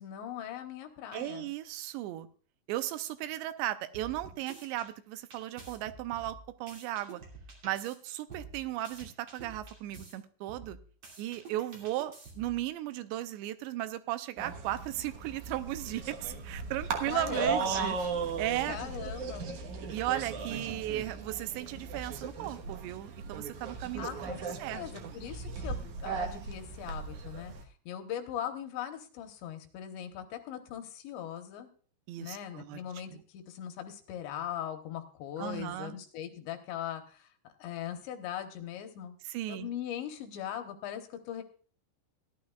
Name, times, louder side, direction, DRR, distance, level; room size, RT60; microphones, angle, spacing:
voice 1, 0.0-1.5 17.1-18.0 18.7-19.5 24.0-27.5 27.9-31.7 32.2-37.3 37.6-39.2 39.5-41.4, left 10 dB, 80° left, 6 dB, 3.3 m, -40 dB
voice 2, 1.1-2.3 2.7-7.2 7.6-10.8 11.2-18.0 18.4-18.8 19.9-24.1 24.6-25.1 32.1-32.8 33.1-33.2 35.4-36.0 39.3-39.7, right 14 dB, 85° right, 11 dB, 2.8 m, -36 dB
sound 1, 3.9-4.9 5.3-7.9 8.3-10.1 10.5-12.6, right 3 dB, 40° right, 2.9 m, -49 dB
sound 2, 14.4-27.6, right 5 dB, 70° right, 1.9 m, -37 dB
17.5 x 11.5 x 2.3 m, 0.42 s
omnidirectional pair, 5.0 m